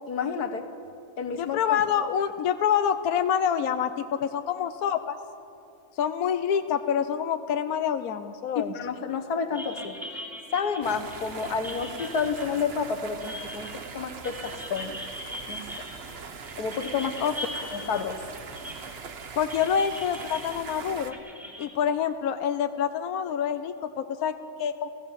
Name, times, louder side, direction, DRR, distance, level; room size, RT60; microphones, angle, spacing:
voice 1, 0.1-0.7 1.2-1.6 8.6-10.0 10.5-15.0 15.5-15.6 16.6-17.2 17.7-18.2, left 5 dB, 90° left, 7 dB, 1.9 m, -30 dB
voice 2, 1.3-5.2 6.0-8.7 17.2-17.3 19.4-21.2 21.6-24.9, left 8 dB, 75° left, 9 dB, 1.2 m, -27 dB
sound 1, 9.5-21.7, left 1 dB, ahead, 3.0 m, -41 dB
sound 2, 10.8-21.1, right 5 dB, 45° right, 1.1 m, -41 dB
30.0 x 15.5 x 7.5 m, 2.6 s
omnidirectional pair, 1.6 m